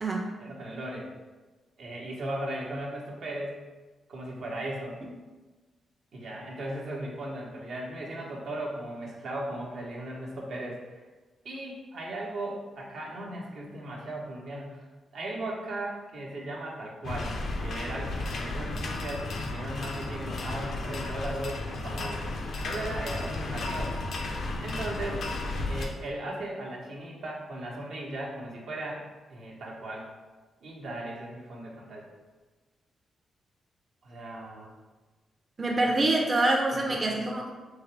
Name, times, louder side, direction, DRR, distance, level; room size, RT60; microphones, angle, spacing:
voice 1, 0.4-1.1 1.8-3.6 4.1-5.0 6.1-11.0 11.4-22.3 22.6-24.0 24.6-25.2 25.6-30.1 30.6-32.1 34.0-34.7 35.8-35.9 36.7-37.2, right 1 dB, 75° right, -3 dB, 0.9 m, -37 dB
sound 1, 17.0-25.9, left 2 dB, 70° left, 0.5 m, -33 dB
voice 2, 35.6-37.5, right 2 dB, 35° right, 0 dB, 0.5 m, -25 dB
3.8 x 2.9 x 3.2 m, 1.3 s
cardioid pair, 60°, 0 cm